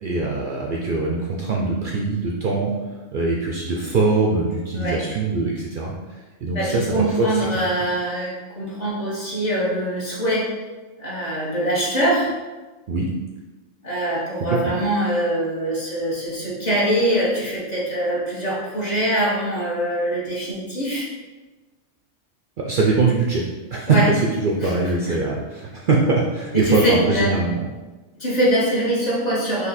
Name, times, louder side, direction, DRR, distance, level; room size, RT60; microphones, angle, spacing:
voice 1, 0.0-2.7 3.1-5.9 6.4-7.4 12.9-13.1 14.5-14.6 22.6-23.4 23.7-27.7, right 3 dB, 60° right, -2 dB, 0.5 m, -22 dB
voice 2, 6.5-10.6 11.0-12.3 13.8-21.1 23.9-24.1 24.6-24.7 25.1-25.2 26.5-27.3 28.2-29.7, right 1 dB, 35° left, -6 dB, 1.2 m, -23 dB
4.1 x 2.8 x 4.1 m, 1.2 s
omnidirectional pair, 1.3 m